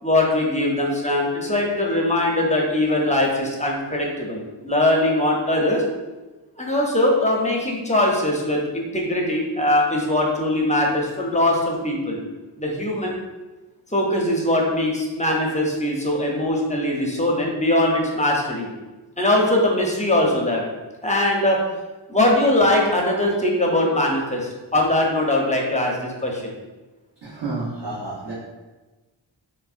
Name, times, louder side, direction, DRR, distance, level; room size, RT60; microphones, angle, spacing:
voice 1, 0.0-5.8 6.6-12.2 12.6-13.2 13.9-18.7 19.2-20.6 21.0-21.6 22.1-26.5, left 1 dB, 15° left, -1 dB, 0.5 m, -21 dB
voice 2, 27.2-28.3, right 3 dB, 60° right, -10 dB, 0.9 m, -30 dB
3.5 x 2.1 x 2.4 m, 1.2 s
wide cardioid pair, 60°, 47 cm